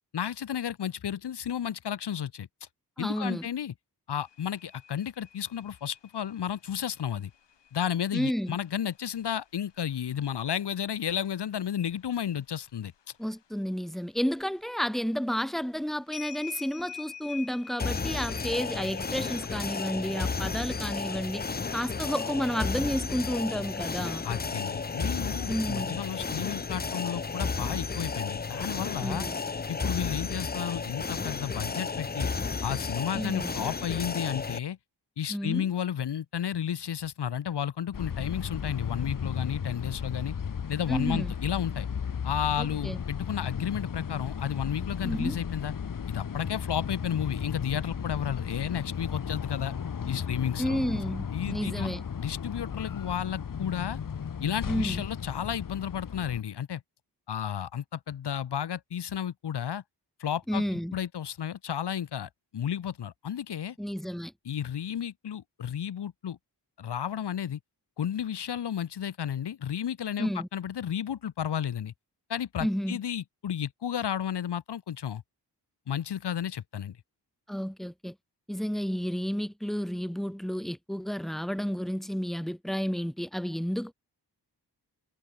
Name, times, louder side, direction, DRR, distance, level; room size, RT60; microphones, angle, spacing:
voice 1, 0.1-2.5 3.0-3.7 4.1-7.3 7.7-12.9 24.2-29.3 29.7-32.3 32.6-34.8 35.2-40.3 40.7-41.9 42.2-45.7 46.1-49.7 50.1-50.8 51.3-51.9 52.2-54.0 54.4-56.8 57.3-59.8 60.2-60.6 60.9-63.7 64.4-66.4 66.8-67.6 68.0-71.9 72.3-75.2 75.9-77.0, left 9 dB, 70° left, 1.4 m, -32 dB
voice 2, 3.0-3.5 8.1-8.6 13.2-21.4 21.7-24.2 25.5-26.0 29.0-29.4 33.1-33.5 35.3-35.7 40.9-41.3 42.6-43.0 45.0-45.4 50.6-52.0 54.7-55.0 60.5-61.0 63.8-64.3 70.2-70.5 72.6-73.0 77.5-78.1 78.5-83.9, equal, ahead, 2.4 m, -31 dB
sound 1, 4.2-10.7 11.1-12.8 13.2-14.5 15.2-15.3 15.6-20.6, left 8 dB, 90° left, 5.9 m, -48 dB
sound 2, 17.8-34.6, left 4 dB, 25° left, 0.7 m, -33 dB
sound 3, 37.9-56.4, left 7 dB, 50° left, 1.6 m, -35 dB
wide cardioid pair, 140°, 41 cm